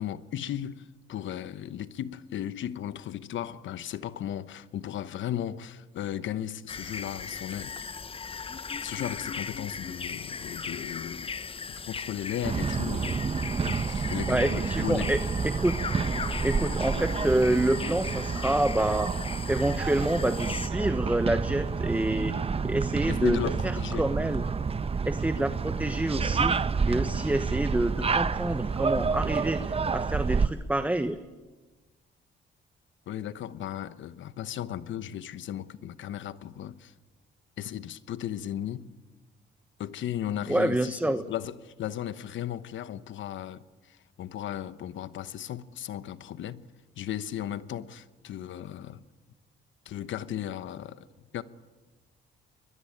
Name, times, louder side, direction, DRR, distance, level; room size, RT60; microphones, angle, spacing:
voice 1, 0.0-7.8 8.8-11.3 11.9-13.2 13.6-15.1 23.1-24.1 33.1-36.9 37.6-38.9 39.8-46.6 47.0-49.0 49.8-51.1 51.3-51.4, left 11 dB, 70° left, 1.1 m, -36 dB
sound 1, 6.7-20.7, left 5 dB, 30° left, 0.7 m, -38 dB
sound 2, 12.4-30.5, right 5 dB, 30° right, 0.9 m, -29 dB
voice 2, 14.3-15.2 15.4-15.9 16.4-19.1 19.5-22.3 22.6-23.4 23.6-24.4 25.1-26.6 26.9-31.2 40.5-41.2, right 1 dB, 10° right, 1.0 m, -27 dB
25.5 x 21.5 x 8.8 m
cardioid pair, 90°, 20 cm